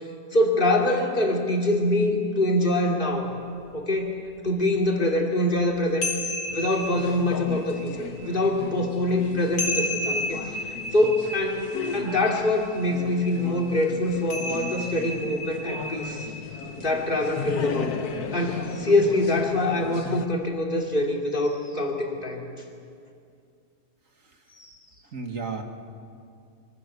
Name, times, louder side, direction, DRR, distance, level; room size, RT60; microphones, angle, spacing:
voice 1, 0.3-3.3 3.7-4.2 4.4-6.1 6.5-10.6 10.9-11.6 11.9-16.3 16.8-17.9 18.3-22.4 24.6-24.8, left 1 dB, 30° left, 0 dB, 3.0 m, -24 dB
sound 1, 3.1-3.2 3.8-3.9 4.3-4.4 5.5-19.0, left 2 dB, 90° left, 3.1 m, -35 dB
sound 2, 6.5-20.3, left 6 dB, 60° left, 1.5 m, -36 dB
voice 2, 25.0-25.6, right 4 dB, 50° right, 4 dB, 2.1 m, -34 dB
25.5 x 23.5 x 6.8 m, 2.4 s
omnidirectional pair, 1.9 m